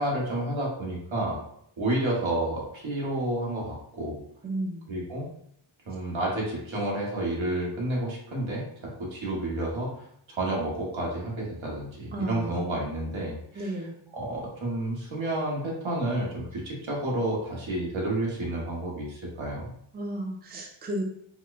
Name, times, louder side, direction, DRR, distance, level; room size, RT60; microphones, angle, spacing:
voice 1, 0.0-1.4 1.8-4.2 4.9-5.3 5.9-8.6 9.0-10.0 10.3-13.7 14.1-19.7, right 1 dB, 70° right, -3 dB, 1.4 m, -30 dB
voice 2, 4.4-4.9 12.1-12.7 13.6-13.9 19.9-21.0, right 1 dB, 20° right, 1 dB, 0.5 m, -33 dB
4.6 x 2.1 x 2.5 m, 0.68 s
wide cardioid pair, 80°, 49 cm